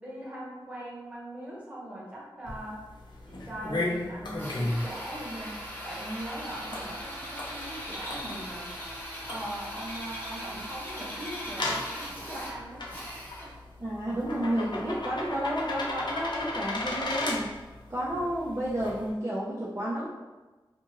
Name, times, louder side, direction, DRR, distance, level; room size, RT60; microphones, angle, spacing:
voice 1, 0.0-2.8 3.3-5.6 5.8-8.9 9.3-13.1, right 1 dB, 15° right, -7 dB, 1.1 m, -40 dB
sound 1, 2.4-19.1, left 2 dB, 60° left, 0.6 m, -37 dB
Drill, 4.4-13.6, equal, 20° left, 0.7 m, -40 dB
voice 2, 13.8-17.5 17.9-20.1, equal, 35° right, -7 dB, 0.5 m, -31 dB
2.6 x 2.5 x 2.9 m, 1.2 s
wide cardioid pair, 60°, 9 cm